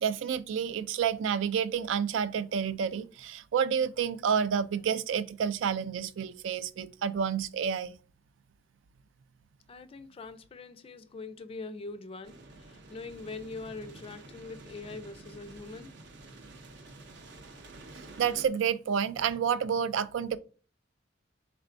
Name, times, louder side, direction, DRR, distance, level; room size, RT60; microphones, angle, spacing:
voice 1, 0.0-8.0 18.2-20.4, right 7 dB, 85° right, 0.3 m, -29 dB
voice 2, 9.7-15.9, left 3 dB, 30° left, 0.3 m, -43 dB
sound 1, 12.2-18.5, right 2 dB, 65° right, 0.7 m, -49 dB
4.3 x 3.4 x 2.5 m
head